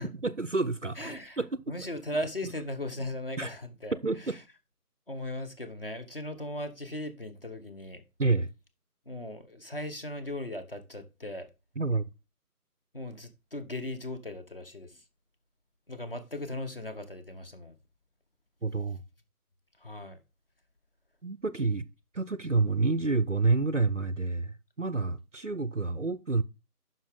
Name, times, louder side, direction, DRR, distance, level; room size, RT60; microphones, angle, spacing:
voice 1, 0.0-1.0 1.4-1.7 3.4-3.5 4.0-4.4 8.2-8.5 11.8-12.0 18.6-19.0 21.2-21.9 22.1-26.4, right 3 dB, 55° right, 0.5 m, -28 dB
voice 2, 1.0-1.4 1.7-4.4 5.1-8.0 9.1-11.5 12.9-15.0 15.9-17.8 19.8-20.2, left 1 dB, 35° left, 1.2 m, -38 dB
9.6 x 6.0 x 3.6 m
figure-of-eight pair, 175°, 46 cm